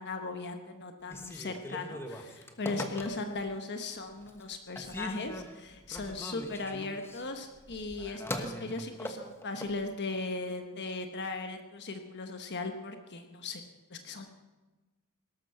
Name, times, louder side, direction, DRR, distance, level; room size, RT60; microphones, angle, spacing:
voice 1, 0.0-13.6 13.9-14.3, left 3 dB, 50° left, 6 dB, 1.1 m, -38 dB
Telephone, 1.0-3.5 4.0-4.5 4.8-9.8, equal, 10° left, 1.2 m, -41 dB
18.0 x 13.0 x 5.8 m, 1.2 s
head